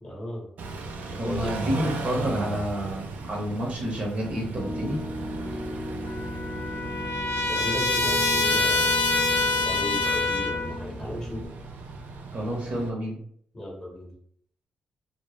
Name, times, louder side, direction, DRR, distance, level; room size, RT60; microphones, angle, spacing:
voice 1, 0.0-0.5 1.1-1.9 7.5-8.9 9.5-11.5 13.5-14.1, left 1 dB, 20° left, -1 dB, 0.8 m, -35 dB
Car / Idling / Accelerating revving vroom, 0.6-12.9, right 3 dB, 80° right, 0.3 m, -37 dB
voice 2, 1.2-5.0 12.3-13.2, equal, 50° right, -1 dB, 0.7 m, -29 dB
Piano, 4.6-11.5, equal, ahead, 0.4 m, -36 dB
Trumpet, 6.0-10.8, left 3 dB, 75° left, 0.6 m, -25 dB
2.0 x 2.0 x 2.9 m, 0.65 s
cardioid pair, 110°, 3 cm